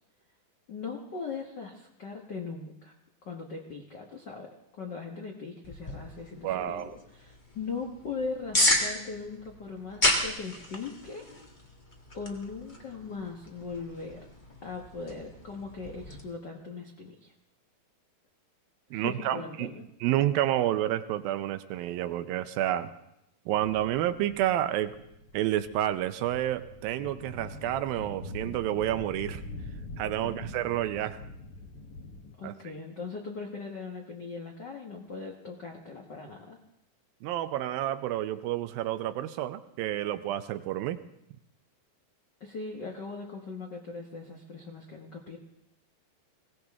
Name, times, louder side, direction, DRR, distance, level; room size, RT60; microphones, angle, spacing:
voice 1, 0.7-2.9 3.2-4.5 4.7-11.2 12.1-14.2 14.6-17.3 18.9-19.8 30.2-30.6 32.4-36.6 42.4-45.4, left 4 dB, 75° left, 1 dB, 1.0 m, -39 dB
sound 1, 5.6-16.2, left 1 dB, 40° left, 0.7 m, -33 dB
voice 2, 6.4-6.9 18.9-19.7 20.0-22.9 23.5-25.0 25.3-29.4 30.0-31.2 32.4-32.5 37.2-41.0, right 13 dB, 85° right, 11 dB, 2.5 m, -29 dB
sound 2, 23.5-32.3, left 2 dB, 55° left, 1.7 m, -44 dB
21.0 x 17.0 x 3.6 m, 0.81 s
omnidirectional pair, 4.1 m